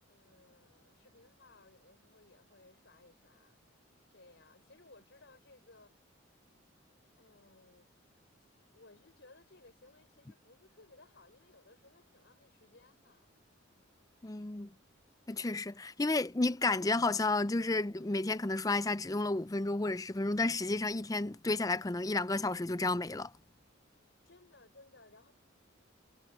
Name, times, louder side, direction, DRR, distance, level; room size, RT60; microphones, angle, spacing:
voice 1, 0.1-6.0 7.2-7.9 8.4-8.5 8.7-13.3 24.2-25.3, left 2 dB, 65° left, 4.7 m, -61 dB
voice 2, 14.2-14.7 15.3-23.3, left 2 dB, 20° left, 0.5 m, -32 dB
head